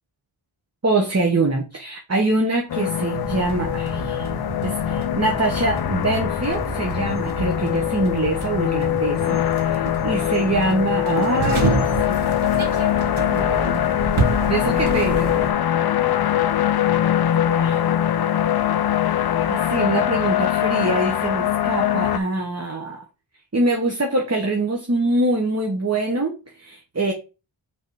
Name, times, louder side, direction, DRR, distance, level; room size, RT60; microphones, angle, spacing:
voice 1, 0.8-4.3 4.6-14.0 14.5-15.5 17.5-17.8 19.5-23.0 23.5-27.1, right 2 dB, 30° right, 2 dB, 1.1 m, -24 dB
sound 1, 2.7-22.2, left 11 dB, 55° left, 0.5 m, -22 dB
sound 2, 3.1-15.5, right 3 dB, 85° right, 1.1 m, -29 dB
5.5 x 3.6 x 4.7 m, 0.30 s
wide cardioid pair, 50°, 47 cm